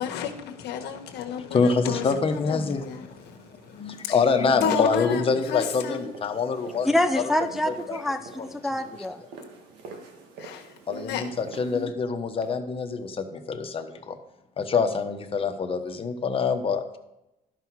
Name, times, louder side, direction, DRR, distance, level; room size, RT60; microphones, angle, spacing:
voice 1, 0.0-4.2 4.6-6.0 10.4-11.2, left 8 dB, 80° left, 1.2 m, -32 dB
voice 2, 1.5-3.4 3.7-6.9 7.9-8.0 8.4-8.5 10.9-14.2 14.6-17.0, left 5 dB, 35° left, 1.0 m, -26 dB
sound 1, 2.7-11.9, right 4 dB, 85° right, 1.6 m, -47 dB
voice 3, 6.8-9.2, left 1 dB, ahead, 0.4 m, -26 dB
12.0 x 5.6 x 4.7 m
cardioid pair, 110°, 17 cm